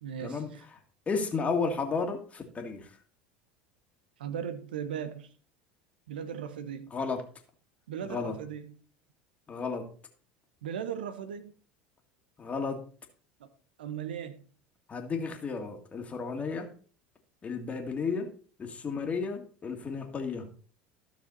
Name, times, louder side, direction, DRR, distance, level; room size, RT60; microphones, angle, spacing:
voice 1, 0.0-0.4 4.2-5.3 6.1-6.9 7.9-8.7 10.6-11.5 13.4-13.5 13.8-14.4, right 8 dB, 85° right, 1.0 m, -37 dB
voice 2, 1.1-3.0 6.9-7.2 8.0-8.4 9.5-9.9 12.4-12.8 14.9-16.7 17.4-18.3 18.6-20.5, left 4 dB, 25° left, 2.0 m, -33 dB
12.5 x 6.2 x 4.0 m
hypercardioid pair, 85°, 5 cm